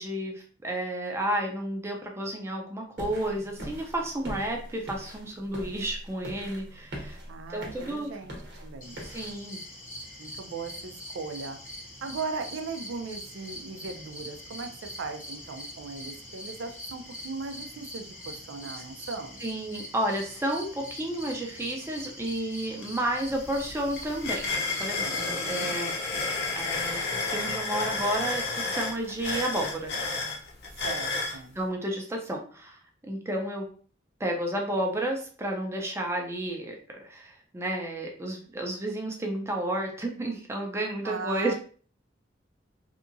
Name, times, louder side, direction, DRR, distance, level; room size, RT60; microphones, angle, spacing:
voice 1, 0.0-7.2 7.5-8.1 9.0-9.6 18.7-18.8 19.4-24.5 24.8-25.9 26.5-29.9 31.5-33.7 34.2-41.5, right 1 dB, 15° right, 1 dB, 0.5 m, -31 dB
sound 1, 3.0-9.3, equal, 65° right, 0.8 m, -42 dB
voice 2, 7.3-8.3 8.6-9.0 10.2-11.6 12.0-19.5 25.1-25.7 30.8-31.6 41.0-41.5, right 4 dB, 85° right, 6 dB, 0.4 m, -38 dB
sound 2, 8.8-25.7, left 1 dB, 45° left, 0.9 m, -43 dB
sound 3, 22.8-22.9 23.2-31.4, left 3 dB, 60° left, 0.6 m, -31 dB
2.8 x 2.4 x 2.5 m, 0.43 s
head